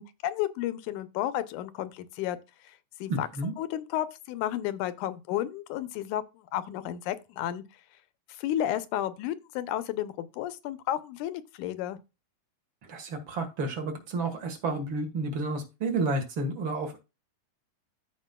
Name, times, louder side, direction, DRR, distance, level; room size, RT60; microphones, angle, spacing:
voice 1, 0.0-2.4 2.6-3.3 3.6-7.6 8.3-12.0, left 12 dB, 85° left, 2.2 m, -32 dB
voice 2, 3.1-3.5 12.8-17.0, right 3 dB, 45° right, 2.0 m, -31 dB
15.0 x 5.1 x 2.3 m
omnidirectional pair, 3.5 m